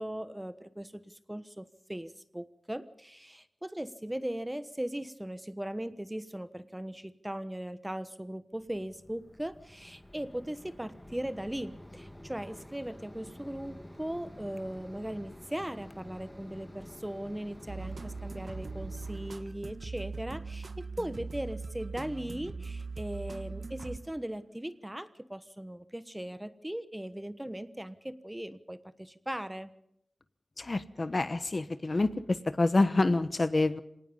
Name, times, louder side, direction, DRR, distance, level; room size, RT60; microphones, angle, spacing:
voice 1, 0.0-29.7, right 1 dB, 10° right, 13 dB, 1.2 m, -39 dB
Mechanisms, 8.6-19.5, left 1 dB, 15° left, 1.7 m, -50 dB
sound 1, 17.7-24.5, right 4 dB, 65° right, 1.4 m, -40 dB
voice 2, 30.6-33.8, left 2 dB, 45° left, 13 dB, 1.1 m, -27 dB
25.5 x 19.0 x 5.6 m, 0.75 s
wide cardioid pair, 70°, 0 cm